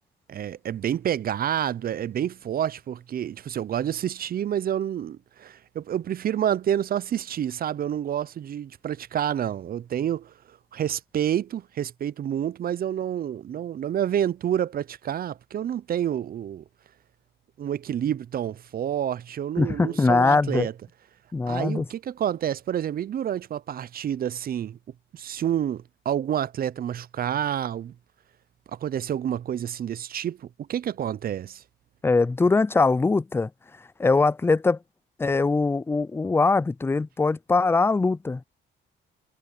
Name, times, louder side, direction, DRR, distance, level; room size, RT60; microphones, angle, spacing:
voice 1, 0.3-10.3 10.7-16.6 17.6-20.7 21.5-24.8 25.1-27.9 28.7-31.6, right 10 dB, 50° right, 0.5 m, -28 dB
voice 2, 19.6-20.7 21.3-21.9 32.0-33.5 34.0-34.8 35.2-38.4, left 3 dB, 10° left, 0.3 m, -22 dB
cardioid pair, 90°, 20 cm